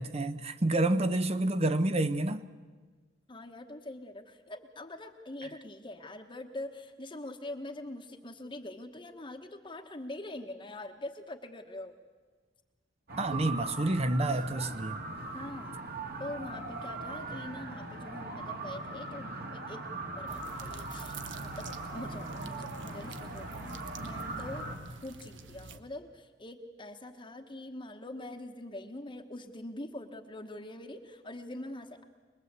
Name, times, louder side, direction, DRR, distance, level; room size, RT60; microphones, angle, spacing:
voice 1, 0.0-2.4 13.2-15.0, right 2 dB, 35° right, 0.9 m, -28 dB
voice 2, 3.3-11.9 13.3-13.6 15.3-15.9 16.2-21.1 21.4-21.7 21.9-24.8 25.0-32.0, left 1 dB, 25° left, 1.2 m, -44 dB
sound 1, 13.1-24.8, right 2 dB, 55° right, 2.6 m, -40 dB
sound 2, 20.3-25.8, right 4 dB, 80° right, 1.2 m, -48 dB
24.0 x 21.0 x 8.2 m
head